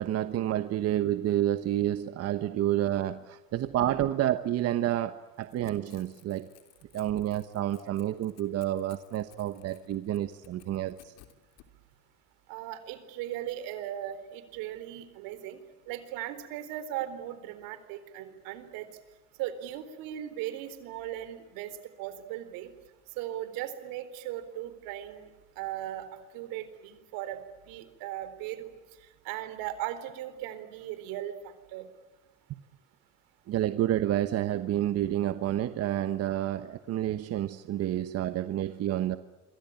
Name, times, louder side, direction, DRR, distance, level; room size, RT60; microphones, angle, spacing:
voice 1, 0.0-6.5 6.9-11.1 33.5-39.2, right 12 dB, 45° right, 11 dB, 1.1 m, -29 dB
Crackle / Tearing, 5.3-11.7, left 14 dB, 65° left, 3.4 m, -58 dB
voice 2, 12.5-15.6 15.9-18.9 19.4-22.7 23.2-25.3 25.6-27.4 27.7-28.7 29.2-31.9, right 12 dB, 75° right, 12 dB, 4.2 m, -38 dB
26.5 x 24.0 x 8.9 m, 1.2 s
cardioid pair, 130°, 34 cm